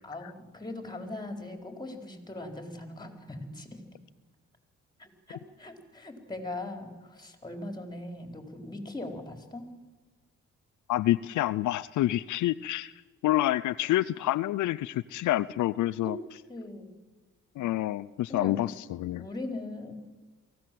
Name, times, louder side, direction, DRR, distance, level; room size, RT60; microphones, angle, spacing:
voice 1, 0.0-3.8 5.0-9.7 14.2-14.3 16.0-16.1 16.5-17.0 18.3-18.6 19.2-19.9, left 2 dB, 15° left, 5 dB, 4.2 m, -40 dB
voice 2, 10.9-12.9 13.2-16.2 17.6-18.7 19.0-19.2, left 15 dB, 75° left, 15 dB, 0.6 m, -27 dB
23.5 x 16.0 x 7.7 m, 1.3 s
cardioid pair, 90°, 30 cm